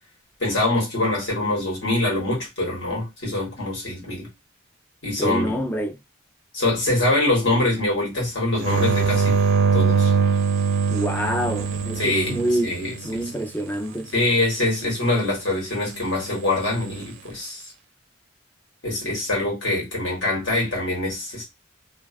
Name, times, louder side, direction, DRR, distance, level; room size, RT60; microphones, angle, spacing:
voice 1, 0.4-4.3 5.0-5.5 6.5-9.4 9.7-10.1 12.0-12.4 12.6-12.9 14.1-17.6 18.8-21.4, left 2 dB, 65° left, 1.2 m, -24 dB
voice 2, 5.2-6.0 10.9-12.8 13.0-14.1, equal, 10° left, 0.4 m, -26 dB
sound 1, 8.6-13.2 16.5-17.0, right 6 dB, 70° right, 0.4 m, -22 dB
2.3 x 2.3 x 2.3 m
head